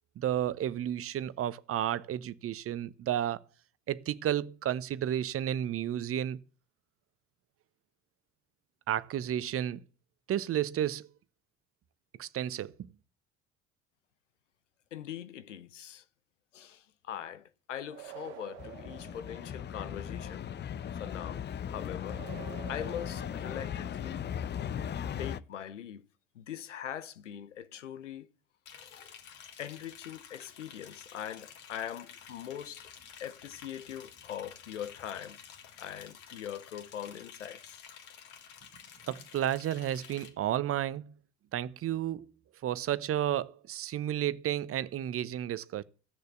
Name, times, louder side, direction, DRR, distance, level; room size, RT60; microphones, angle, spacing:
voice 1, 0.2-3.4 3.9-6.4 8.9-9.8 10.3-11.1 12.2-12.7 39.1-41.1 41.5-42.3 42.6-45.8, right 11 dB, 40° right, 0.9 m, -32 dB
voice 2, 14.9-16.0 16.5-20.5 20.9-22.3 22.7-24.2 25.2-26.1 26.3-28.3 28.7-29.2 29.6-32.9 33.2-35.4 35.8-37.8, left 10 dB, 80° left, 0.9 m, -42 dB
sound 1, 17.9-19.9 22.0-24.1, right 16 dB, 65° right, 1.5 m, -49 dB
sound 2, 18.6-25.4, left 8 dB, 30° left, 0.7 m, -38 dB
Liquid, 28.7-40.3, left 8 dB, 55° left, 3.2 m, -51 dB
16.0 x 6.6 x 8.2 m
figure-of-eight pair, 60°, 36 cm